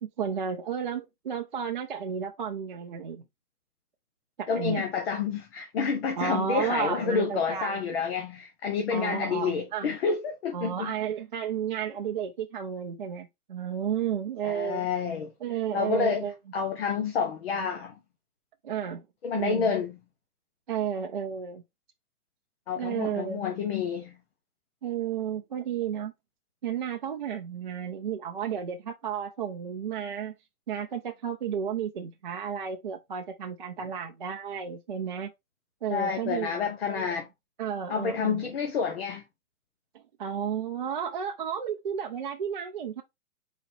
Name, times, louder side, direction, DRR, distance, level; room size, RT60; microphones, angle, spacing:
voice 1, 0.0-3.2 4.4-4.8 6.2-7.8 8.9-9.9 10.5-14.9 15.4-16.4 18.6-19.0 19.3-19.8 20.7-21.6 22.8-23.4 24.8-26.1 26.6-30.3 30.7-35.3 35.8-37.1 37.6-38.4 39.9-43.0, right 8 dB, 35° right, 0.5 m, -32 dB
voice 2, 4.5-10.9 14.4-15.3 15.7-16.3 16.5-17.9 19.2-20.0 22.7-24.1 35.9-37.3 37.9-39.2, left 6 dB, 40° left, 1.0 m, -29 dB
4.0 x 2.9 x 4.3 m
hypercardioid pair, 160°, 44 cm